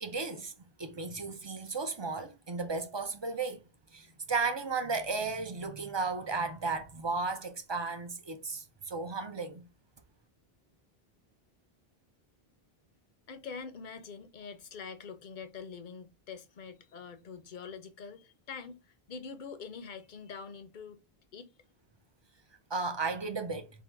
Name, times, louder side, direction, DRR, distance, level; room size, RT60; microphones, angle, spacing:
voice 1, 0.0-3.6 3.9-9.7 22.7-23.7, right 4 dB, 30° right, 0.6 m, -34 dB
voice 2, 13.3-21.0 21.3-21.5, left 5 dB, 55° left, 0.8 m, -45 dB
3.7 x 2.6 x 4.5 m
omnidirectional pair, 1.0 m